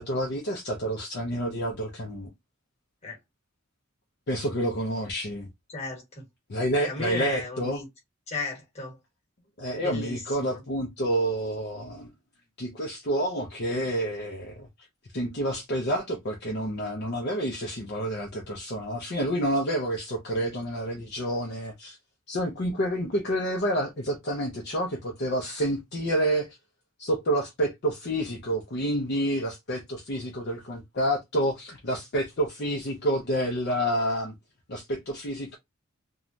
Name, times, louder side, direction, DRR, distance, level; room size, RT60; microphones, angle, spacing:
voice 1, 0.0-2.3 4.3-5.5 6.5-7.8 9.6-12.1 12.6-14.7 15.1-22.0 22.3-26.6 27.0-34.3 34.7-35.6, right 1 dB, 50° left, 0.6 m, -29 dB
voice 2, 5.7-6.2 6.8-7.9 8.3-9.0 9.8-10.6, left 3 dB, 30° left, 1.3 m, -35 dB
3.1 x 2.2 x 2.6 m
head